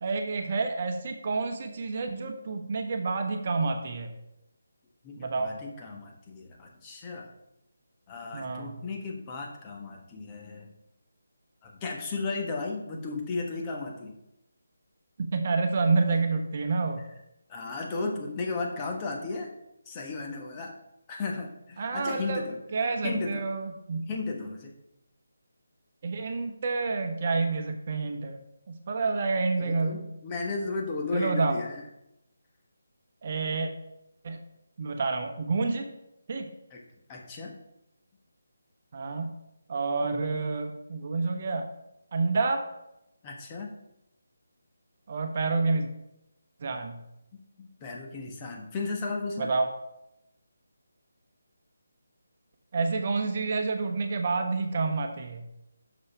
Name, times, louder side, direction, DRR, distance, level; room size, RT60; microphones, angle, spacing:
voice 1, 0.0-4.1 5.2-5.5 8.3-8.8 15.2-17.0 21.8-22.4 22.7-24.1 26.0-28.4 28.7-30.1 31.1-31.6 33.2-33.7 34.2-34.4 34.8-35.9 36.3-36.5 38.9-39.3 39.7-41.7 42.1-42.6 45.1-45.9 46.6-47.0 49.4-49.7 52.7-55.4, right 4 dB, 40° right, 5 dB, 1.0 m, -28 dB
voice 2, 5.0-7.3 8.1-10.7 11.6-14.1 17.5-19.5 19.9-20.7 21.1-22.6 23.0-23.4 24.1-24.7 29.6-31.8 36.7-36.8 37.1-37.6 40.0-40.3 43.2-43.7 47.6-49.5, left 3 dB, 20° left, 0 dB, 1.3 m, -34 dB
6.1 x 5.4 x 5.6 m, 0.85 s
figure-of-eight pair, 155°, 0 cm